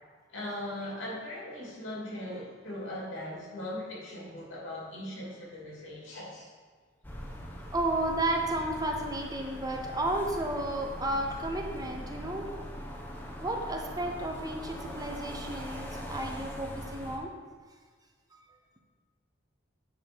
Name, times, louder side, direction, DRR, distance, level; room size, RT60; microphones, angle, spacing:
voice 1, 0.3-6.5, left 1 dB, 75° left, -4 dB, 2.7 m, -39 dB
sound 1, 7.0-17.2, equal, 10° left, 0.9 m, -41 dB
voice 2, 7.7-12.5 13.4-17.3 18.3-18.4, right 1 dB, 20° right, 2 dB, 0.7 m, -32 dB
9.6 x 4.1 x 6.2 m, 1.5 s
head